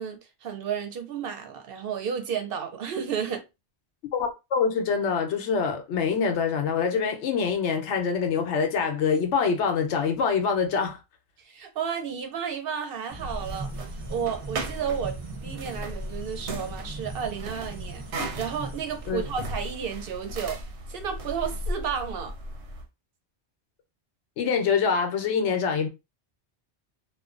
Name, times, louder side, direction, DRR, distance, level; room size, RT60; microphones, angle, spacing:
voice 1, 0.0-3.4 11.4-13.7 14.1-20.6 20.9-22.3, right 7 dB, 65° right, 0.7 m, -32 dB
voice 2, 4.1-11.0 19.1-19.2 24.4-25.9, left 6 dB, 90° left, 0.9 m, -25 dB
sound 1, 13.1-19.1, right 4 dB, 30° right, 0.5 m, -40 dB
sound 2, 13.1-22.8, right 1 dB, 90° right, 0.9 m, -36 dB
2.4 x 2.2 x 2.4 m
omnidirectional pair, 1.1 m